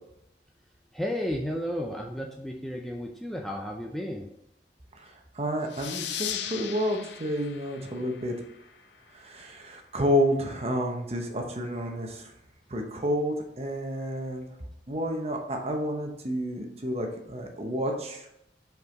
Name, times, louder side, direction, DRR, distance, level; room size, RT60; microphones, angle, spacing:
voice 1, 0.9-4.3, equal, ahead, 0 dB, 0.5 m, -33 dB
voice 2, 4.9-8.4 9.1-12.3 12.7-14.5 14.9-18.3, equal, 35° right, 3 dB, 1.0 m, -30 dB
sound 1, 5.7-8.9, left 10 dB, 75° left, 0.4 m, -38 dB
5.4 x 4.6 x 4.0 m, 0.82 s
head